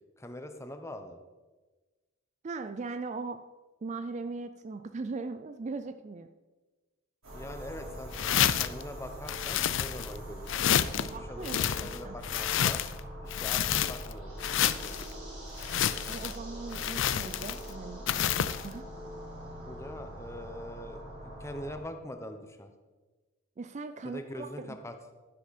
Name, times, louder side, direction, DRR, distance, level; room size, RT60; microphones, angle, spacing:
voice 1, 0.2-1.2 7.3-8.1 8.4-10.7 10.9-12.8 13.2-15.3 19.6-21.0 21.2-22.7 24.0-24.9, left 1 dB, 15° left, 7 dB, 0.9 m, -43 dB
voice 2, 2.4-3.4 3.8-6.3 11.0-12.2 16.1-18.8 23.6-24.8, right 3 dB, 35° right, 9 dB, 0.4 m, -39 dB
sound 1, 7.2-21.8, equal, 90° right, 4.4 m, -43 dB
sound 2, 8.1-8.8 9.3-10.2 10.5-11.1 11.4-13.0 13.3-14.1 14.4-15.1 15.6-16.4 16.7-17.7 18.1-18.7, left 10 dB, 60° left, 0.4 m, -29 dB
12.0 x 10.0 x 4.2 m, 1.3 s
head